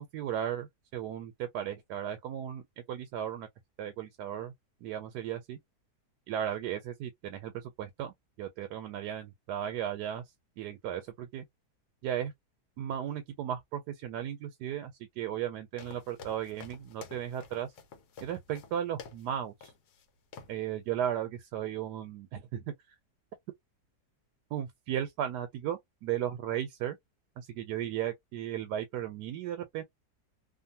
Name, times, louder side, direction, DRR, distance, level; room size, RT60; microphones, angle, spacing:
voice 1, 0.0-3.5 3.8-4.5 4.8-5.6 6.3-10.2 10.6-11.4 12.0-12.3 12.8-17.7 18.2-19.7 20.5-22.7 24.5-27.0 27.4-29.8, right 10 dB, 85° right, 1.2 m, -35 dB
sound 1, 15.8-19.3 19.6-20.0 20.3-20.6, left 5 dB, 75° left, 1.3 m, -50 dB
2.6 x 2.5 x 2.7 m
omnidirectional pair, 1.7 m